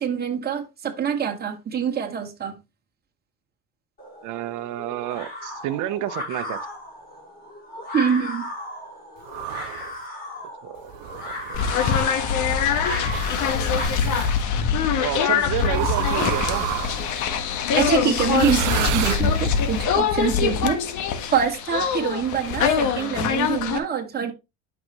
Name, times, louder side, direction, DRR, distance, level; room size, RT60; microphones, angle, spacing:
voice 1, 0.0-2.5 7.9-8.5 17.8-20.8 21.3-24.3, right 7 dB, 30° right, 2.2 m, -25 dB
sound 1, 4.0-13.8, left 1 dB, 25° left, 5.6 m, -35 dB
voice 2, 4.2-6.6 10.6-10.9 11.2-11.8 15.0-16.7, right 13 dB, 60° right, 1.1 m, -30 dB
sound 2, 9.3-9.9 10.9-12.1 13.1-14.3 15.7-17.2 18.3-19.7, right 18 dB, 80° right, 0.6 m, -30 dB
sound 3, 11.5-23.8, left 7 dB, 60° left, 1.6 m, -23 dB
11.0 x 6.0 x 3.1 m
cardioid pair, 120°, 34 cm